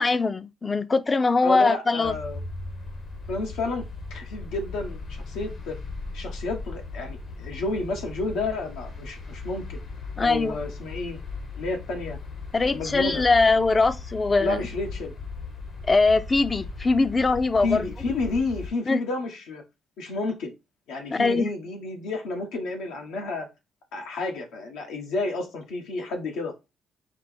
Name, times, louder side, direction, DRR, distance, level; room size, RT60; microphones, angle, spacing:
voice 1, 0.0-2.1 10.2-10.6 12.5-14.6 15.9-17.9 18.9-19.0 21.1-21.5, left 3 dB, 30° left, 0.4 m, -22 dB
voice 2, 1.4-2.4 3.3-3.8 4.1-5.8 6.1-9.8 10.2-11.2 11.6-12.2 12.6-13.2 14.4-15.1 17.6-19.6 20.0-20.5 20.9-23.5 23.9-26.7, left 3 dB, 90° left, 1.0 m, -31 dB
sound 1, 2.0-18.7, left 3 dB, 60° left, 0.9 m, -38 dB
4.3 x 2.0 x 4.3 m
cardioid pair, 90°, 0 cm